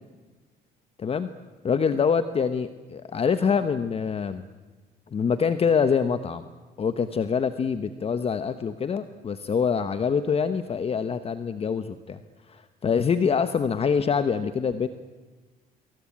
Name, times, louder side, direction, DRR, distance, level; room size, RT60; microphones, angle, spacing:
voice 1, 1.6-4.4 5.1-6.4 6.8-12.2 12.5-14.9, left 6 dB, 35° left, 11 dB, 1.2 m, -25 dB
26.0 x 24.0 x 8.7 m, 1.3 s
cardioid pair, 110°, 17 cm